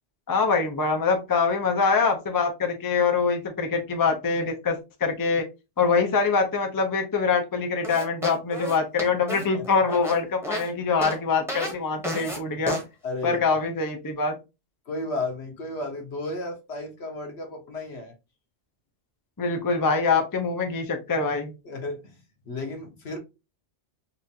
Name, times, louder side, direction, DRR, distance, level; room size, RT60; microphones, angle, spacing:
voice 1, 0.3-5.5 5.8-12.8 13.2-14.3 19.4-21.5, left 5 dB, 30° left, 0.4 m, -24 dB
sound 1, 7.8-10.7 11.0-11.2 11.5-11.7 12.0-12.4 12.7-12.8, equal, 5° right, 0.9 m, -31 dB
voice 2, 13.0-13.4 14.9-18.1 21.6-22.1 22.5-23.2, left 2 dB, 65° left, 1.3 m, -33 dB
4.2 x 2.5 x 2.7 m
omnidirectional pair, 1.2 m